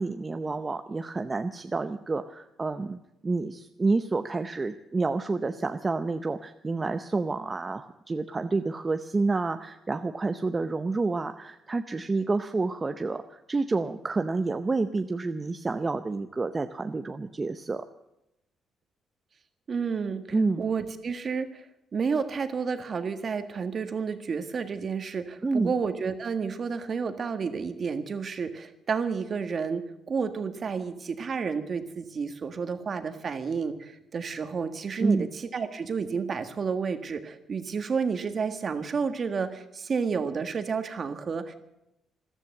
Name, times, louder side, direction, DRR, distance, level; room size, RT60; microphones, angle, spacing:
voice 1, 0.0-17.8 20.3-20.6 25.4-25.7 35.0-35.3, right 3 dB, 25° right, 7 dB, 0.7 m, -29 dB
voice 2, 19.7-20.2 20.6-21.7 21.9-41.6, right 5 dB, 45° right, 8 dB, 1.6 m, -31 dB
14.0 x 13.0 x 7.8 m, 0.88 s
cardioid pair, 90°, 0 cm